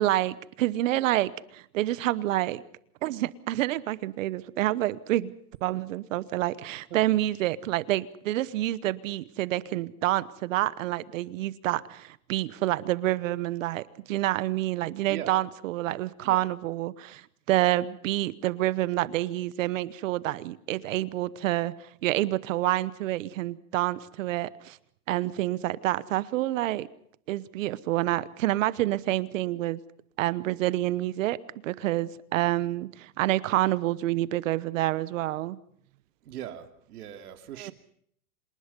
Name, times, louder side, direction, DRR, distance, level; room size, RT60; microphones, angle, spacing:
voice 1, 0.0-2.6 3.0-5.3 5.6-21.7 22.0-24.8 25.1-26.9 27.3-29.8 30.2-31.4 31.6-35.6 37.6-37.7, right 15 dB, 60° right, 1.0 m, -28 dB
voice 2, 15.1-15.4 16.2-16.4 36.2-37.7, right 11 dB, 90° right, 2.7 m, -40 dB
27.0 x 19.5 x 5.3 m
supercardioid pair, 165°, 44 cm